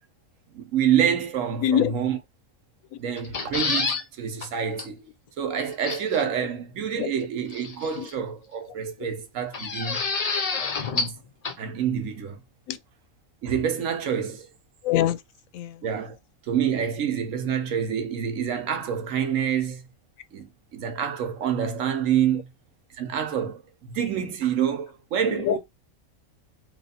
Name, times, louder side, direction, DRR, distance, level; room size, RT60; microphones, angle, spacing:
voice 1, 0.5-2.2 3.0-5.1 5.4-10.0 10.8-11.2 11.6-12.4 13.4-14.5 15.8-16.2 16.5-19.8 20.3-22.5 22.9-23.6 23.9-25.6, right 8 dB, 75° right, 1.2 m, -27 dB
voice 2, 1.6-1.9 2.9-3.0 7.0-7.1 8.0-8.1 12.7-12.8 14.8-15.2 15.5-15.8 25.3-25.6, left 10 dB, 90° left, 1.0 m, -24 dB
sound 1, 3.2-4.0 4.4-4.5 4.8-4.9 5.8-6.2 7.5-8.1 9.5-11.2 11.4-11.5, left 4 dB, 45° left, 0.5 m, -28 dB
3.1 x 2.4 x 4.1 m
omnidirectional pair, 1.4 m